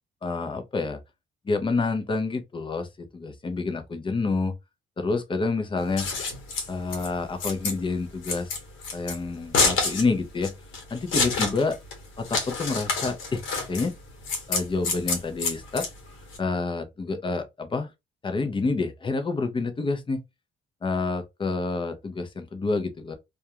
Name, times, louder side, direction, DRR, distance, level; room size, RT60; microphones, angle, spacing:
voice 1, 0.2-1.0 1.5-4.5 5.0-6.1 6.7-8.5 8.9-10.5 10.9-11.8 12.2-13.4 13.7-13.9 14.5-15.8 16.4-17.9 18.2-20.2 20.8-23.1, left 3 dB, 25° left, 0.6 m, -28 dB
Scissors, 5.8-16.4, left 4 dB, 85° left, 1.1 m, -28 dB
2.3 x 2.3 x 2.8 m
cardioid pair, 90°, 20 cm